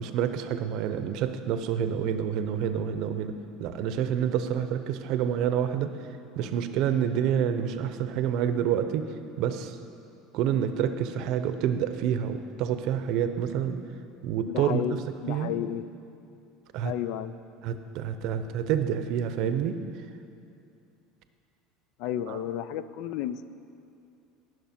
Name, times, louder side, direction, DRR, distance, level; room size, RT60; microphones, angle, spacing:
voice 1, 0.0-5.9 6.4-9.1 9.4-9.8 10.3-13.8 14.2-15.0 15.3-15.5 16.7-16.9 17.6-19.8 22.3-22.4, right 9 dB, 60° right, 10 dB, 0.7 m, -28 dB
voice 2, 14.5-15.9 16.8-17.3 22.0-23.5, left 10 dB, 65° left, 14 dB, 0.4 m, -32 dB
18.5 x 6.4 x 4.4 m, 2.6 s
supercardioid pair, 130°, 0 cm